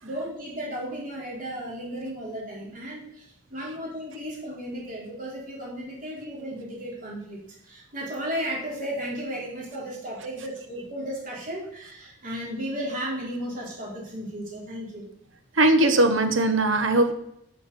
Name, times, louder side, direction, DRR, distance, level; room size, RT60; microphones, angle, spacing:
voice 1, 0.0-3.2 3.5-15.0, equal, 45° right, -4 dB, 3.5 m, -34 dB
voice 2, 15.5-17.1, right 2 dB, 90° right, 8 dB, 1.1 m, -20 dB
7.4 x 7.1 x 6.8 m, 0.74 s
head